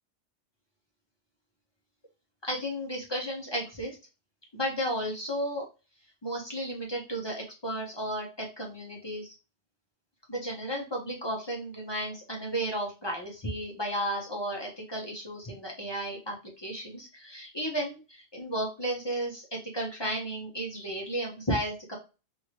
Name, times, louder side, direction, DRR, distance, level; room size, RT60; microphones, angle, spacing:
voice 1, 2.4-4.0 4.5-5.6 6.2-9.3 10.3-22.0, right 1 dB, 25° left, -1 dB, 0.7 m, -33 dB
3.0 x 2.6 x 3.0 m, 0.31 s
omnidirectional pair, 1.2 m